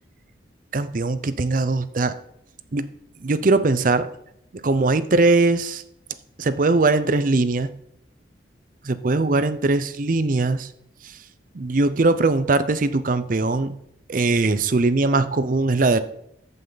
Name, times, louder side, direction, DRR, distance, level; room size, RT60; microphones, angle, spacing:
voice 1, 0.7-2.1 2.7-2.9 3.2-4.1 4.6-5.8 6.4-7.7 8.8-10.7 11.5-13.8 14.1-16.0, right 3 dB, 45° right, 13 dB, 0.5 m, -20 dB
14.0 x 5.6 x 3.9 m, 0.73 s
head